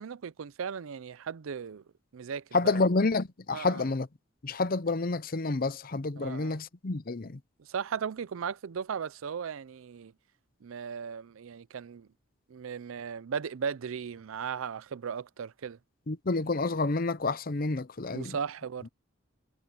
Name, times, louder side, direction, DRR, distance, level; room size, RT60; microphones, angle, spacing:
voice 1, 0.0-1.8 2.1-2.9 3.5-3.9 6.2-6.6 7.6-10.1 10.6-12.1 12.5-15.8 18.1-18.9, right 6 dB, 80° right, 0.5 m, -37 dB
voice 2, 2.5-4.1 4.4-7.4 16.1-18.4, left 3 dB, 45° left, 0.7 m, -29 dB
head